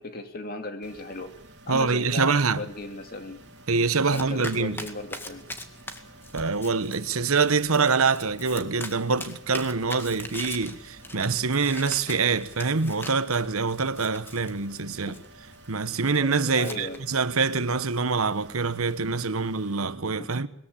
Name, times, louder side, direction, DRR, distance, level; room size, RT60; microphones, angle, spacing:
voice 1, 0.0-1.3 1.7-3.4 4.1-5.4 15.1-15.2 16.6-17.0 20.2-20.3, left 2 dB, 45° left, 2.6 m, -36 dB
sound 1, 0.8-19.8, right 2 dB, 50° right, 3.3 m, -50 dB
voice 2, 1.7-2.6 3.7-4.9 6.3-15.2 15.7-20.5, right 4 dB, 85° right, 1.2 m, -25 dB
Domestic sounds home sounds, 3.4-17.0, left 1 dB, 10° left, 2.0 m, -42 dB
21.5 x 21.0 x 8.6 m
head